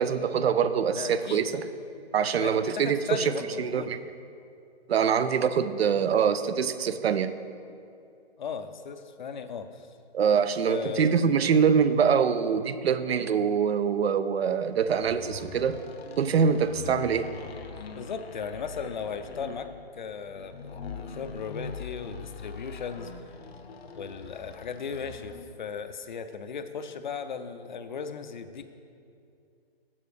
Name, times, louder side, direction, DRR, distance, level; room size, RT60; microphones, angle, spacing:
voice 1, 0.0-1.7 2.1-3.3 3.6-4.0 4.9-7.3 10.1-15.8 16.2-17.3, right 7 dB, 75° right, 12 dB, 0.5 m, -24 dB
voice 2, 1.0-1.5 2.4-4.0 8.4-9.9 10.6-11.2 18.0-23.1 24.0-28.6, left 6 dB, 50° left, 10 dB, 0.5 m, -37 dB
sound 1, 14.7-25.5, left 4 dB, 75° left, 0.8 m, -43 dB
7.1 x 7.0 x 4.9 m, 2.5 s
hypercardioid pair, 165°, 31 cm